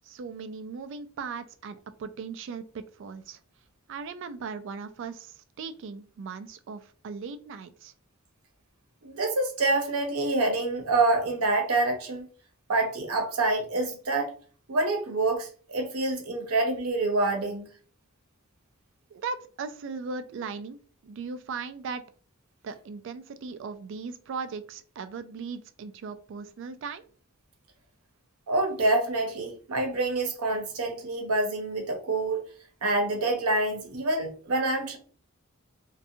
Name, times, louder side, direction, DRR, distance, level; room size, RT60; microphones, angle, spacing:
voice 1, 0.0-3.4 3.9-7.9 19.1-22.1 22.6-27.1, right 5 dB, 55° right, 0.3 m, -38 dB
voice 2, 9.0-12.3 12.7-14.3 14.7-17.6 28.5-32.4 32.8-35.0, right 2 dB, 90° right, 0.7 m, -26 dB
2.5 x 2.2 x 2.7 m
head